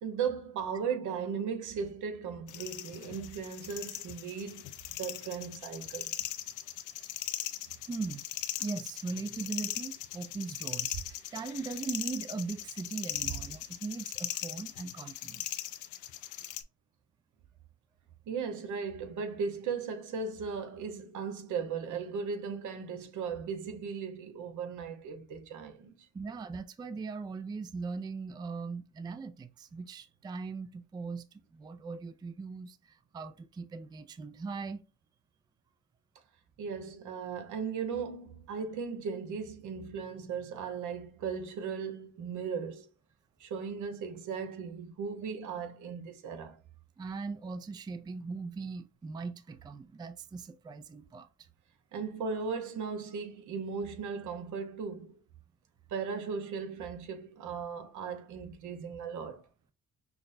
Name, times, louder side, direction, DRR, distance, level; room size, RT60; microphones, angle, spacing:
voice 1, 0.0-4.7 5.0-6.1 13.2-13.3 18.3-25.9 36.6-42.9 43.4-46.6 51.9-55.2 55.9-59.4, right 6 dB, 80° right, 0.9 m, -37 dB
sound 1, 2.5-16.6, left 13 dB, 85° left, 0.5 m, -39 dB
voice 2, 7.9-8.3 8.6-11.0 11.3-15.6 26.1-34.8 47.0-51.3, right 4 dB, 15° right, 0.3 m, -39 dB
5.9 x 2.1 x 2.5 m
cardioid pair, 90°, 30 cm